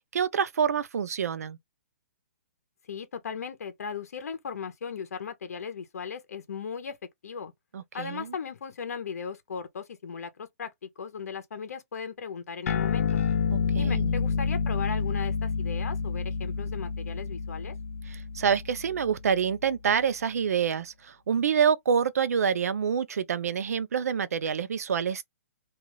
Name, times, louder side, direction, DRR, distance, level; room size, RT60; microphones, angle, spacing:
voice 1, 0.1-1.6 7.7-8.3 13.5-14.1 18.3-25.2, right 7 dB, 85° right, 0.5 m, -27 dB
voice 2, 2.9-7.0 7.2-7.5 7.9-13.2 13.8-17.7, left 6 dB, 85° left, 0.7 m, -37 dB
sound 1, 12.7-19.5, left 5 dB, 65° left, 0.4 m, -29 dB
2.4 x 2.3 x 3.0 m
hypercardioid pair, 165°, 8 cm